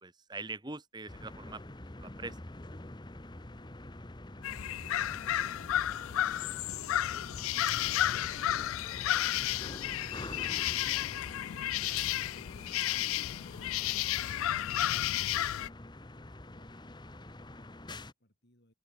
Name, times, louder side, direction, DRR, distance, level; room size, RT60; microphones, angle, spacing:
voice 1, 0.0-1.6 2.0-2.4, right 3 dB, 20° right, 1.5 m, -42 dB
sound 1, 1.1-18.1, left 1 dB, 20° left, 1.1 m, -47 dB
sound 2, 4.4-15.7, left 13 dB, 80° left, 0.3 m, -32 dB
voice 2, 14.2-18.7, left 1 dB, 55° left, 7.0 m, -63 dB
open air
head